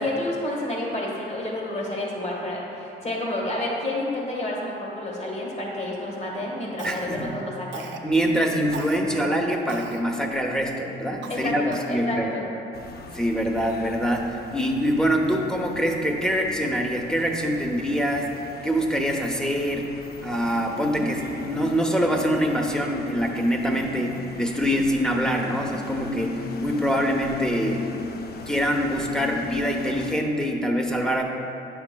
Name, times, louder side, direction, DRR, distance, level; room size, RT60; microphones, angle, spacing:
voice 1, 0.0-7.9 11.3-12.4, left 1 dB, 35° left, -2 dB, 1.4 m, -30 dB
voice 2, 6.8-7.4 8.0-12.3 13.1-18.3 18.6-20.0 20.2-27.9 28.5-31.2, equal, 5° left, 1 dB, 0.7 m, -24 dB
Cough, 6.8-7.3 7.7-8.1 8.7-9.0 9.7-10.0 10.6-10.7 11.2-12.0, right 6 dB, 65° right, 0.6 m, -39 dB
sound 1, 12.7-30.1, left 4 dB, 50° left, 0.5 m, -39 dB
9.1 x 5.9 x 2.2 m, 2.8 s
cardioid pair, 90°, 20 cm